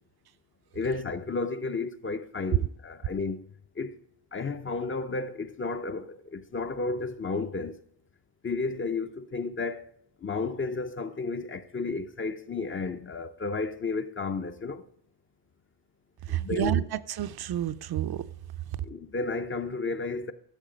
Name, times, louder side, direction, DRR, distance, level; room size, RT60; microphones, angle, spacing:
voice 1, 0.7-3.4 3.8-4.0 4.3-7.8 8.4-9.8 10.2-14.8 16.3-16.8 18.8-20.3, left 3 dB, 30° left, 0.6 m, -32 dB
voice 2, 16.3-18.2 18.7-18.8, right 11 dB, 60° right, 0.6 m, -29 dB
12.5 x 7.5 x 5.1 m
wide cardioid pair, 160°, 43 cm